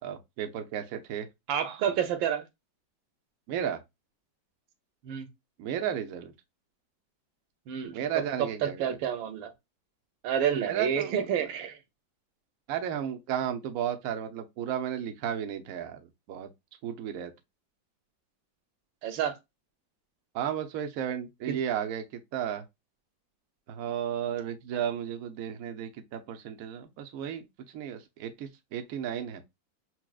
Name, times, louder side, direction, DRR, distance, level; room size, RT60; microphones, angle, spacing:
voice 1, 0.0-1.3 2.0-2.1 3.5-3.8 5.6-6.3 7.9-8.9 10.7-11.2 12.7-16.5 16.8-17.3 20.3-22.6 23.7-27.4 27.7-29.4, right 9 dB, 70° right, 0.8 m, -33 dB
voice 2, 1.5-2.4 5.0-5.3 7.7-8.0 8.4-9.5 10.2-11.8 19.0-19.3 21.5-21.6, right 8 dB, 90° right, 1.4 m, -29 dB
5.9 x 2.1 x 2.3 m
omnidirectional pair, 2.1 m